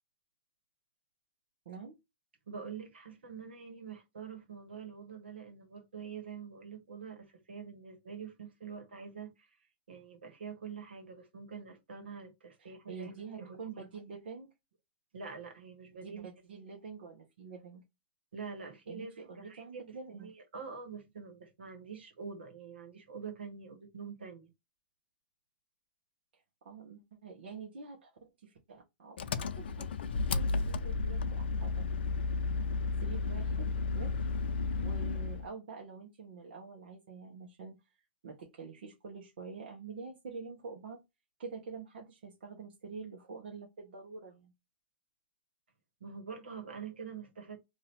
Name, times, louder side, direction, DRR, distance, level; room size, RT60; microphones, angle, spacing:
voice 1, 1.6-2.0 12.6-14.5 16.0-17.8 18.9-20.3 26.3-31.9 33.0-33.7 33.9-34.3 34.8-37.8 38.2-41.0 41.4-44.5, right 5 dB, 75° right, 1.1 m, -47 dB
voice 2, 2.5-9.5 9.9-13.8 15.1-16.3 18.3-24.5 46.0-47.6, right 6 dB, 90° right, 1.4 m, -46 dB
Engine, 29.2-35.5, left 4 dB, 80° left, 0.4 m, -33 dB
2.7 x 2.7 x 3.3 m
hypercardioid pair, 135°, 6 cm